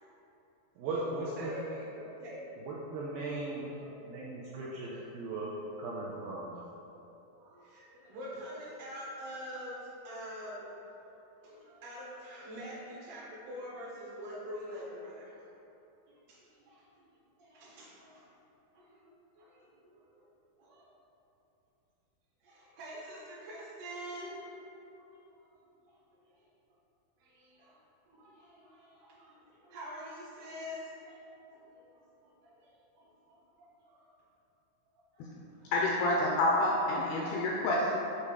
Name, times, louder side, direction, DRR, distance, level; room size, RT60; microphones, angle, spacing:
voice 1, 0.8-1.6 2.7-3.7 4.0-5.5 5.8-6.5, right 2 dB, 90° right, -6 dB, 2.0 m, -37 dB
voice 2, 1.4-2.7 3.7-4.2 4.8-4.9 6.6-6.7 7.4-10.7 11.3-15.4 16.3-17.1 17.4-18.2 18.7-20.2 20.6-20.8 22.4-24.7 24.9-25.5 25.8-25.9 27.2-31.2 31.5-32.0 32.4-32.7 32.9-34.1 34.8-35.2 35.6-35.7, equal, 70° right, -9 dB, 1.4 m, -46 dB
voice 3, 35.7-37.9, left 1 dB, 80° left, -3 dB, 2.2 m, -28 dB
7.2 x 2.7 x 4.8 m, 2.9 s
omnidirectional pair, 4.7 m